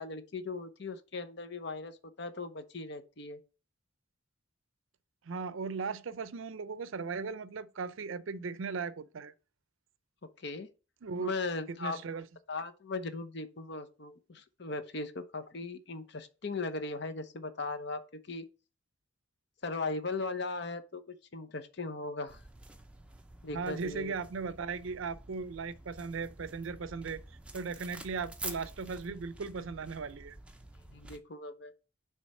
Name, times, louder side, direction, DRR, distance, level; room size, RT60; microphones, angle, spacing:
voice 1, 0.0-3.4 10.4-10.7 11.2-12.0 12.5-18.0 18.3-18.5 19.6-22.4 23.4-24.1 30.9-31.7, left 3 dB, 55° left, 0.8 m, -38 dB
voice 2, 5.3-9.3 11.0-11.3 11.8-12.3 23.5-27.2 27.5-30.4, right 4 dB, 75° right, 0.5 m, -37 dB
sound 1, 22.3-31.2, right 2 dB, 5° right, 0.5 m, -48 dB
6.3 x 3.4 x 5.4 m
head